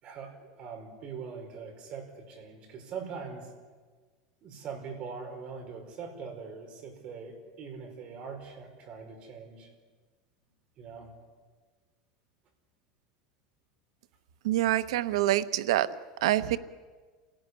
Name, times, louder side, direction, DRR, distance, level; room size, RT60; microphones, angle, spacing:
voice 1, 0.0-3.5 4.4-9.7 10.8-11.1, right 5 dB, 35° right, 4 dB, 5.0 m, -42 dB
voice 2, 14.4-15.9 16.2-16.6, right 14 dB, 90° right, 14 dB, 1.0 m, -26 dB
28.0 x 17.0 x 9.8 m, 1.5 s
supercardioid pair, 165°, 3 cm